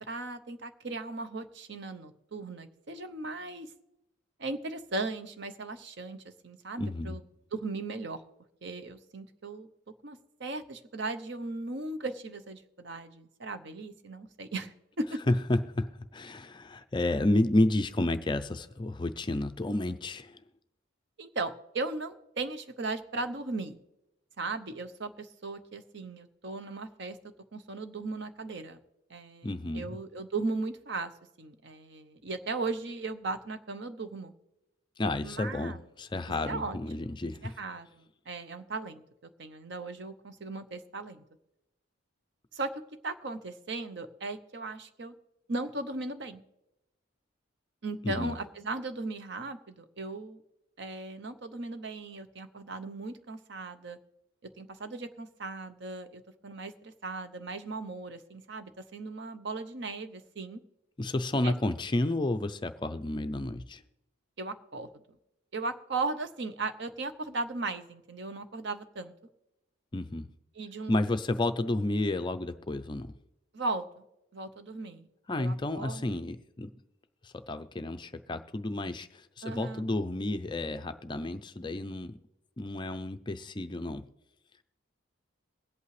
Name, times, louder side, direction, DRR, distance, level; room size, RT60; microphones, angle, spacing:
voice 1, 0.1-3.7 4.4-7.2 7.5-8.2 8.6-9.7 10.0-15.2 21.2-23.8 24.4-27.2 27.5-28.8 29.1-31.1 31.4-34.3 35.2-35.8 36.5-37.1 37.4-39.0 39.4-41.2 42.5-42.7 43.0-45.1 45.5-46.4 47.8-50.4 50.8-54.0 54.6-60.6 61.4-61.5 64.4-64.9 65.5-69.1 70.5-70.9 73.5-74.0 74.3-75.1 75.4-76.0 79.4-79.9, right 3 dB, 55° right, 10 dB, 0.8 m, -37 dB
voice 2, 6.8-7.2 15.3-20.4 29.4-30.0 35.0-37.5 48.0-48.4 61.0-63.8 69.9-70.3 70.9-73.1 75.3-76.7 77.2-82.2 82.6-84.1, left 1 dB, 20° left, 9 dB, 0.4 m, -31 dB
22.5 x 8.4 x 3.2 m, 0.91 s
head